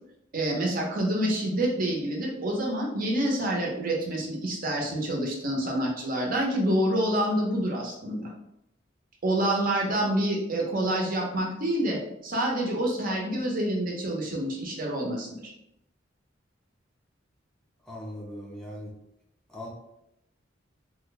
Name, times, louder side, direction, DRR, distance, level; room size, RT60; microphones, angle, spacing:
voice 1, 0.3-8.3 9.2-15.5, right 1 dB, 50° right, -1 dB, 0.8 m, -27 dB
voice 2, 17.8-18.9 19.5-19.7, left 1 dB, 5° left, -3 dB, 0.5 m, -39 dB
2.9 x 2.2 x 3.9 m, 0.81 s
head